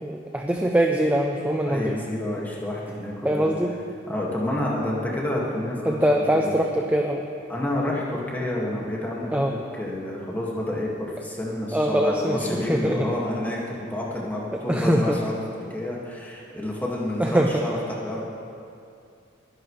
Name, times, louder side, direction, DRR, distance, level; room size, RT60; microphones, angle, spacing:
voice 1, 0.0-1.9 3.2-3.7 5.8-7.2 9.3-9.5 11.7-13.0 14.7-15.2 17.2-17.6, right 1 dB, 10° right, 2 dB, 0.5 m, -22 dB
voice 2, 1.7-3.5 4.1-6.5 7.5-9.3 9.8-15.3 15.7-18.2, left 1 dB, 10° left, -4 dB, 2.0 m, -29 dB
21.5 x 11.0 x 3.3 m, 2.5 s
head